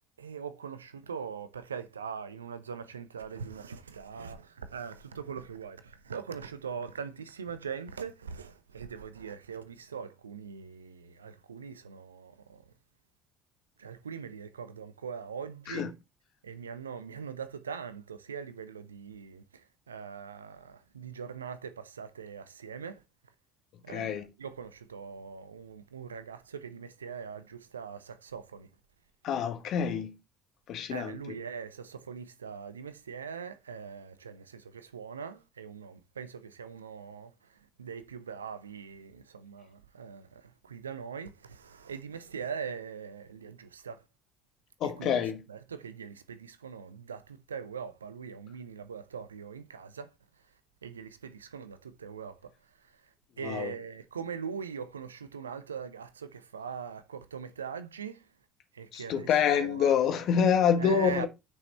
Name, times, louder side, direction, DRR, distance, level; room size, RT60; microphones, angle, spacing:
voice 1, 0.2-12.6 13.8-15.9 16.4-23.0 23.8-28.7 30.9-44.0 44.8-45.2 45.5-50.1 50.8-52.5 52.8-53.0 53.4-58.3 58.7-60.1 60.8-61.3, right 6 dB, 80° right, 0.8 m, -41 dB
voice 2, 23.9-24.2 29.2-30.1 30.7-31.2 44.8-45.4 53.4-53.7 58.9-61.3, left 7 dB, 55° left, 1.7 m, -27 dB
9.6 x 5.6 x 4.4 m
figure-of-eight pair, 55°, 0 cm